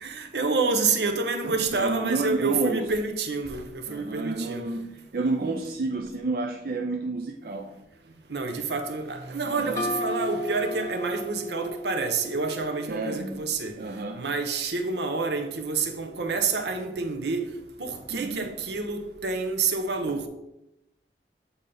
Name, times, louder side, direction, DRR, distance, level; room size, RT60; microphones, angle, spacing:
voice 1, 0.0-4.6 8.3-13.7 14.2-17.5 17.8-20.3, right 4 dB, 75° right, 0.8 m, -28 dB
voice 2, 1.7-2.9 3.9-7.7 9.4-9.9 12.9-13.4 13.8-14.2 18.1-18.5, right 3 dB, 55° right, 0.4 m, -30 dB
sound 1, 9.8-13.3, left 1 dB, 20° left, 0.8 m, -34 dB
8.2 x 4.0 x 3.8 m
head